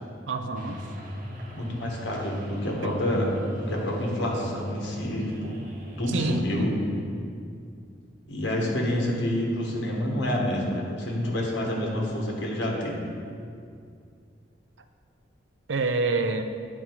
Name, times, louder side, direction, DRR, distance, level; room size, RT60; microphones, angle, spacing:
voice 1, 0.3-0.8 2.8-3.2 6.1-6.7 15.7-16.4, right 3 dB, 85° right, 8 dB, 0.5 m, -28 dB
sound 1, 0.5-7.0, equal, 45° right, 0.9 m, -38 dB
voice 2, 1.5-5.6 6.0-6.7 8.3-13.1, left 1 dB, 75° left, -2 dB, 1.3 m, -28 dB
8.9 x 4.2 x 4.5 m, 2.3 s
head